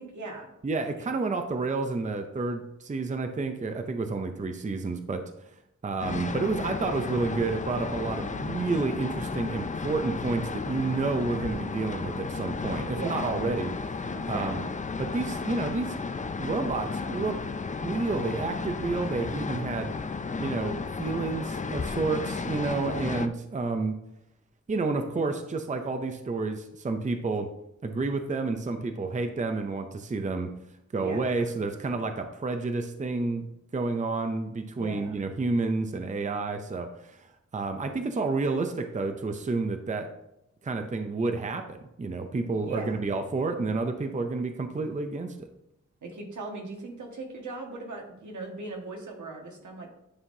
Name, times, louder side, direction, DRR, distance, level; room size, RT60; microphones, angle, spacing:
voice 1, 0.0-0.5 1.0-1.1 12.9-13.4 14.1-14.8 22.9-23.3 31.0-31.5 34.7-35.3 42.6-43.1 46.0-49.9, right 3 dB, 80° right, 1 dB, 1.6 m, -39 dB
voice 2, 0.6-5.2 5.8-14.0 14.2-14.6 15.0-15.9 16.4-17.4 17.8-19.9 20.4-24.0 24.7-27.5 27.8-30.5 30.9-33.5 33.7-40.1 40.6-45.5, right 3 dB, 25° right, 6 dB, 0.5 m, -30 dB
sound 1, 6.0-23.3, left 4 dB, 25° left, 0.4 m, -33 dB
9.7 x 5.6 x 2.7 m, 0.85 s
wide cardioid pair, 150°, 29 cm